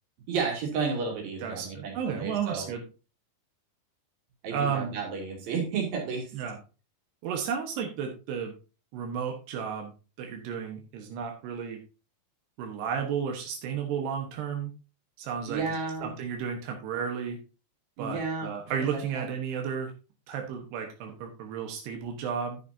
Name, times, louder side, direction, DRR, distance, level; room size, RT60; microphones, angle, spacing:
voice 1, 0.3-2.7 4.4-6.3 15.5-16.1 18.0-18.5 18.9-19.3, right 5 dB, 65° right, 0 dB, 4.5 m, -32 dB
voice 2, 1.4-2.8 4.5-4.9 6.3-6.6 7.2-8.5 8.9-9.9 10.2-11.8 12.6-14.7 15.2-15.6 16.0-17.4 18.0-19.9 20.3-22.6, right 7 dB, 90° right, 2 dB, 3.4 m, -33 dB
11.0 x 9.1 x 2.7 m, 0.32 s
omnidirectional pair, 4.6 m